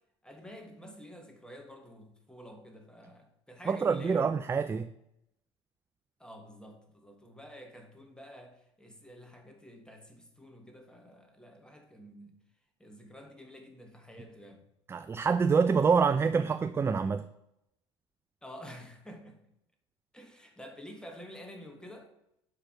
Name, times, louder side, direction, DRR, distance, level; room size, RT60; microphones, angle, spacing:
voice 1, 0.2-4.3 6.2-12.4 12.8-14.7 18.4-19.4 20.1-22.1, equal, 5° left, 4 dB, 1.5 m, -49 dB
voice 2, 3.7-4.9 14.9-17.2, right 5 dB, 15° right, 11 dB, 0.3 m, -26 dB
5.9 x 4.8 x 5.9 m, 0.82 s
hypercardioid pair, 65°, 16 cm